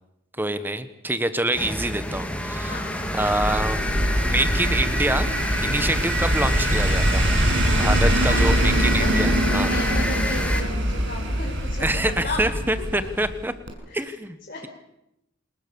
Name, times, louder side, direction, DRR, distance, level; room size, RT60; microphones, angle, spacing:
voice 1, 0.4-2.7 3.1-3.8 4.3-5.3 5.6-7.3 7.7-9.7 11.8-13.5 13.9-14.4, right 1 dB, 10° right, 12 dB, 1.3 m, -26 dB
sound 1, 1.5-10.6, equal, 5° left, 2.7 m, -28 dB
voice 2, 2.6-3.3 4.1-4.3 7.6-8.6 8.8-9.2 9.6-12.4 12.9-13.1 13.9-14.1 14.5-14.7, left 2 dB, 45° left, -2 dB, 5.2 m, -36 dB
sound 2, 3.0-13.4 13.7-13.8, right 1 dB, 60° right, 6.8 m, -23 dB
28.0 x 20.0 x 7.0 m, 0.86 s
head